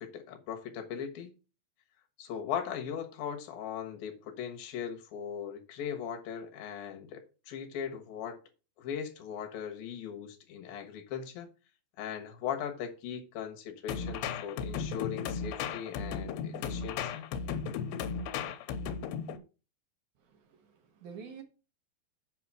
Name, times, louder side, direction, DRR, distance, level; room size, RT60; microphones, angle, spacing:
voice 1, 0.0-1.3 2.2-8.4 8.8-11.5 12.0-17.3, left 8 dB, 65° left, 2.9 m, -39 dB
sound 1, 13.9-19.4, left 6 dB, 85° left, 3.0 m, -35 dB
voice 2, 20.2-21.4, right 6 dB, 60° right, 2.4 m, -48 dB
8.4 x 5.0 x 6.1 m
omnidirectional pair, 4.9 m